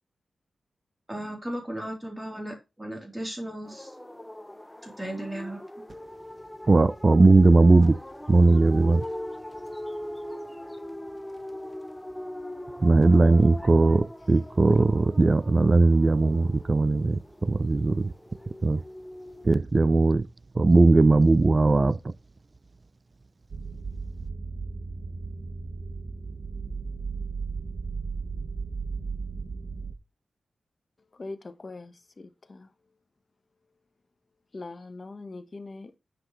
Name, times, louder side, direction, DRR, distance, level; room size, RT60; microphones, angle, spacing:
voice 1, 1.1-3.9 4.8-5.6, right 1 dB, 10° right, 3.3 m, -36 dB
sound 1, 3.7-19.6, left 1 dB, 5° left, 0.6 m, -41 dB
voice 2, 6.7-8.0 8.3-9.0 12.8-18.1 18.6-18.8 19.4-20.3 20.6-22.1, right 3 dB, 30° right, 0.4 m, -19 dB
sound 2, 23.5-29.9, right 4 dB, 50° right, 1.3 m, -35 dB
voice 3, 31.1-32.7 34.5-36.0, left 3 dB, 30° left, 1.1 m, -41 dB
9.7 x 7.9 x 3.1 m
wide cardioid pair, 150°, 0 cm